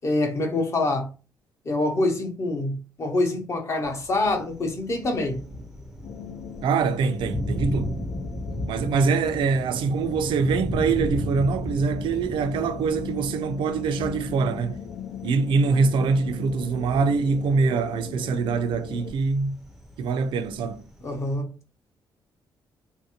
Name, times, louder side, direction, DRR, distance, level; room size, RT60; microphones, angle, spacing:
voice 1, 0.0-1.1 1.7-5.4 21.0-21.5, left 2 dB, 35° left, 0.7 m, -25 dB
Thunder, 3.8-21.4, equal, 5° right, 0.5 m, -36 dB
sound 1, 6.0-19.1, left 8 dB, 75° left, 0.4 m, -40 dB
voice 2, 6.6-8.0 8.7-14.8 15.2-19.6 20.0-20.8, right 4 dB, 85° right, 0.4 m, -24 dB
3.4 x 2.5 x 2.8 m
wide cardioid pair, 160°, 8 cm